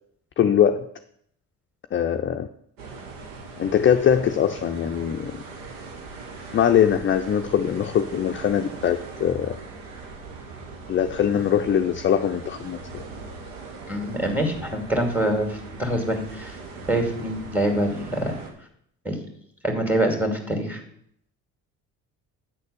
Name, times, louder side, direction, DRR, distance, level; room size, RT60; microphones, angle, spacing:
voice 1, 0.4-0.9 1.9-2.5 3.6-5.4 6.5-9.6 10.9-13.0, left 9 dB, 30° left, 7 dB, 0.5 m, -22 dB
sound 1, 2.8-18.5, right 4 dB, 90° right, 1.3 m, -40 dB
voice 2, 13.9-16.6 16.9-18.4 19.0-19.2 19.6-20.8, right 1 dB, 5° right, 4 dB, 2.4 m, -25 dB
8.9 x 4.2 x 6.8 m, 0.69 s
hypercardioid pair, 65°, 37 cm